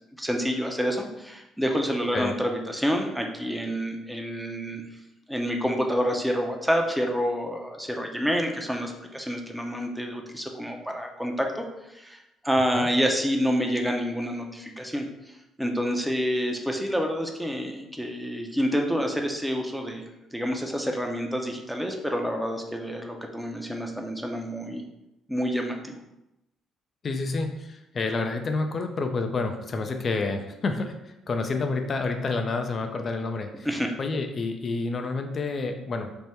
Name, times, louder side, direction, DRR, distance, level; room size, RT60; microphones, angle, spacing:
voice 1, 0.2-4.8 5.3-24.8 25.3-26.0 33.6-33.9, equal, 5° right, 2 dB, 0.7 m, -28 dB
voice 2, 27.0-33.7 34.0-36.2, left 3 dB, 45° left, 5 dB, 0.5 m, -29 dB
3.5 x 2.1 x 4.2 m, 0.93 s
supercardioid pair, 60°, 0 cm